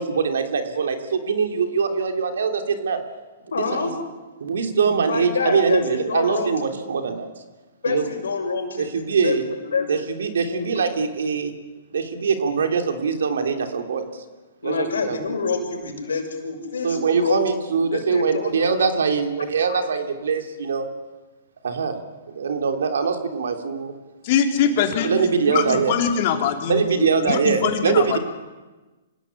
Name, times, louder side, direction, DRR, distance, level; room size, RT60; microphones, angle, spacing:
voice 1, 0.0-3.0 3.6-3.9 4.4-7.3 7.9-8.0 8.8-9.4 9.9-11.5 11.9-14.1 14.6-15.2 16.8-20.9 21.6-22.0 22.3-23.9 25.0-26.0 26.7-28.2, right 5 dB, 80° right, 5 dB, 3.4 m, -23 dB
voice 2, 3.5-3.9 5.0-6.9 7.8-9.4 9.6-9.9 10.5-10.7 14.6-18.9 19.7-19.8, left 4 dB, 85° left, 2 dB, 6.7 m, -27 dB
voice 3, 24.2-25.1 25.4-26.8 27.3-28.2, left 8 dB, 45° left, 3 dB, 3.9 m, -22 dB
26.5 x 17.5 x 8.6 m, 1.2 s
hypercardioid pair, 135°, 0 cm